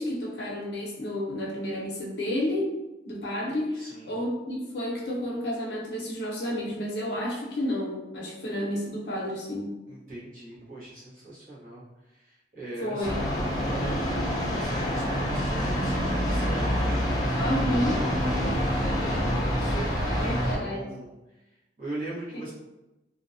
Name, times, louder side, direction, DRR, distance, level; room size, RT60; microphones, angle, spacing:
voice 1, 0.0-2.7 3.1-9.7 12.8-13.2 17.4-18.0 20.1-20.8, left 1 dB, 70° left, -2 dB, 0.6 m, -31 dB
voice 2, 3.8-4.2 9.9-17.3 18.4-21.1 21.8-22.5, right 1 dB, 50° right, -8 dB, 1.0 m, -40 dB
sound 1, 13.0-20.6, equal, 20° left, 0.5 m, -26 dB
2.6 x 2.1 x 2.5 m, 1.0 s
head